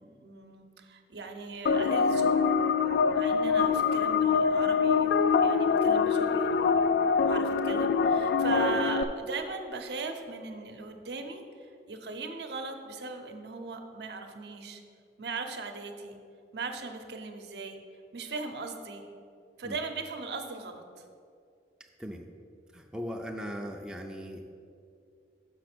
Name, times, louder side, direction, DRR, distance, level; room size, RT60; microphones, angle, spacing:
voice 1, 0.0-2.4 2.8-5.1 5.3-14.8 15.2-16.2 16.5-17.8 18.1-19.0 19.6-21.0, right 4 dB, 75° right, 5 dB, 0.7 m, -39 dB
sound 1, 1.7-9.0, left 5 dB, 65° left, 0.3 m, -24 dB
voice 2, 22.7-24.5, equal, 5° right, 1 dB, 0.4 m, -39 dB
6.2 x 5.7 x 6.0 m, 2.4 s
head